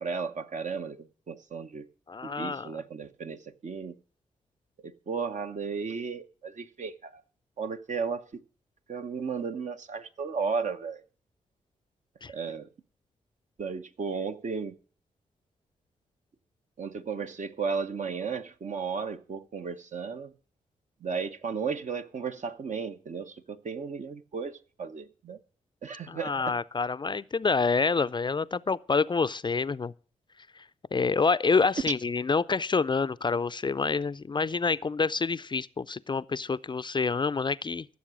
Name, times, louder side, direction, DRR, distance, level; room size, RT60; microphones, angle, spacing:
voice 1, 0.0-1.9 2.2-3.9 4.8-7.2 7.6-8.4 8.9-11.0 12.3-12.7 13.6-14.7 16.8-20.3 21.0-25.4 25.8-26.3, right 5 dB, 55° right, 0.9 m, -34 dB
voice 2, 2.1-2.7 12.2-12.3 26.1-29.9 30.9-37.9, left 4 dB, 30° left, 0.5 m, -27 dB
14.5 x 7.0 x 6.1 m
hypercardioid pair, 40°, 15 cm